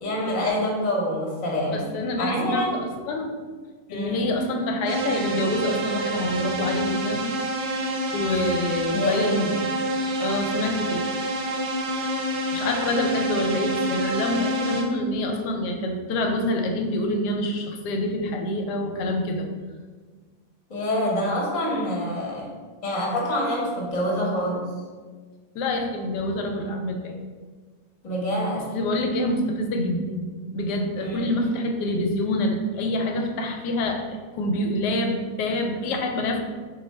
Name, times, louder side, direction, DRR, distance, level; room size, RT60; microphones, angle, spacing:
voice 1, 0.0-1.9 2.2-2.9 3.9-4.3 8.9-9.4 20.7-22.5 22.8-24.7 28.0-28.7 31.0-31.3, equal, 35° left, -3 dB, 0.8 m, -26 dB
voice 2, 1.7-3.3 3.9-7.3 8.1-9.6 10.2-11.3 12.5-19.5 25.5-27.2 28.7-30.3 30.5-36.4, left 1 dB, 85° left, 4 dB, 1.2 m, -26 dB
sound 1, 4.9-14.8, right 1 dB, 65° right, 0.9 m, -27 dB
3.9 x 2.6 x 4.2 m, 1.4 s
omnidirectional pair, 1.8 m